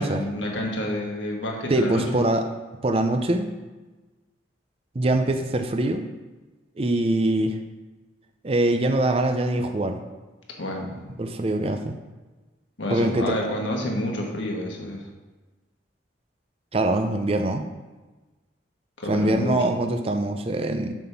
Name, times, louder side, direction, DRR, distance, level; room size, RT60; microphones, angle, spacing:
voice 1, 0.0-2.2 10.6-11.1 12.8-15.1 19.0-19.6, left 1 dB, 80° left, 0 dB, 1.4 m, -29 dB
voice 2, 1.7-2.5 2.8-3.5 5.0-6.0 6.8-7.6 8.4-10.0 11.2-12.0 12.9-13.3 16.7-17.7 19.1-21.0, right 1 dB, 30° right, 6 dB, 0.5 m, -23 dB
7.4 x 3.7 x 5.9 m, 1.2 s
head